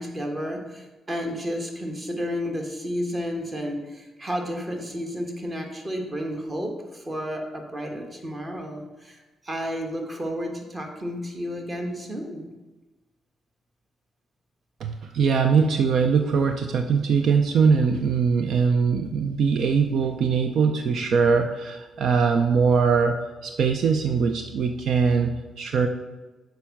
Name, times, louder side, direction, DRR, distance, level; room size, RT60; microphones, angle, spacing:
voice 1, 0.0-12.5, equal, 25° right, 2 dB, 1.4 m, -32 dB
voice 2, 14.8-25.9, right 5 dB, 65° right, 6 dB, 0.5 m, -22 dB
6.8 x 4.6 x 5.9 m, 1.2 s
cardioid pair, 105°, 0 cm